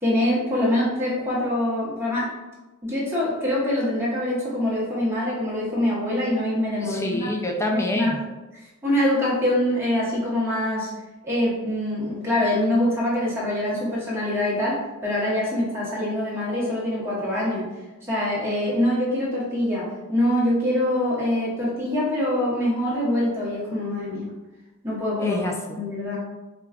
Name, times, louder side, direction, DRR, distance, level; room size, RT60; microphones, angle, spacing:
voice 1, 0.0-2.3 2.8-7.2 7.7-8.1 8.8-10.9 11.2-17.7 18.0-24.2 24.8-25.4 25.7-26.2, left 1 dB, 10° right, -7 dB, 1.0 m, -24 dB
voice 2, 6.8-8.2 25.2-25.8, left 1 dB, 15° left, 1 dB, 0.3 m, -26 dB
4.6 x 2.3 x 2.3 m, 1.1 s
head